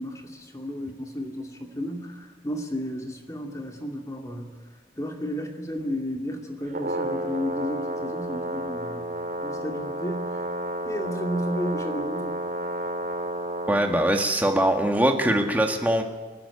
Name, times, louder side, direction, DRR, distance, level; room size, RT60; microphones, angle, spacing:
voice 1, 0.0-4.6 5.0-9.1 9.4-10.5 10.8-12.5, equal, 20° left, 2 dB, 2.4 m, -33 dB
Brass instrument, 6.7-13.8, right 1 dB, 50° right, 2.4 m, -31 dB
voice 2, 13.7-16.0, right 1 dB, 10° right, 3 dB, 1.7 m, -22 dB
27.5 x 10.5 x 9.8 m, 1.4 s
head